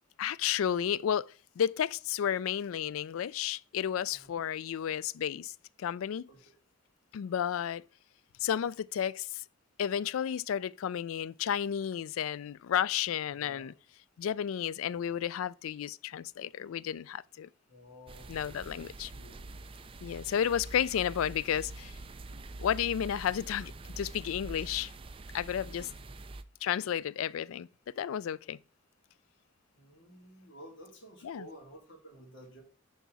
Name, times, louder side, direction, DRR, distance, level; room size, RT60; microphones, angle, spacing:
voice 1, 0.2-5.5 5.8-6.3 7.1-7.8 8.4-9.4 9.8-13.7 14.2-17.5 18.3-19.1 20.0-21.9 22.6-24.9 25.3-25.9 26.6-27.7 28.0-28.6 31.2-31.4, left 9 dB, 90° left, 0.3 m, -32 dB
voice 2, 13.3-13.7 17.7-18.5 18.8-19.4 25.8-26.1 29.7-32.6, equal, 60° left, 3.1 m, -53 dB
sound 1, 18.1-26.4, right 2 dB, 25° right, 0.4 m, -45 dB
10.0 x 4.7 x 4.1 m
head